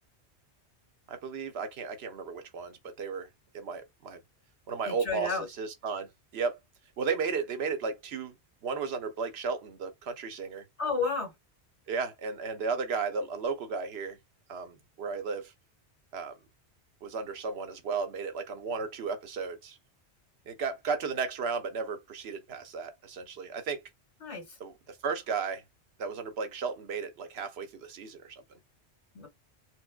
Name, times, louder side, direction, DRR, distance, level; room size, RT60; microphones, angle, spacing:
voice 1, 1.1-3.3 3.5-4.2 4.7-6.6 7.0-8.3 8.6-10.6 11.9-14.2 14.5-15.5 16.1-16.4 17.0-19.8 20.5-23.8 24.6-25.6 26.0-28.4, right 5 dB, 70° right, 0.9 m, -34 dB
voice 2, 4.9-5.4 10.8-11.3 24.2-24.6 29.1-29.3, left 4 dB, 90° left, 1.9 m, -31 dB
4.2 x 2.1 x 2.2 m
omnidirectional pair, 1.1 m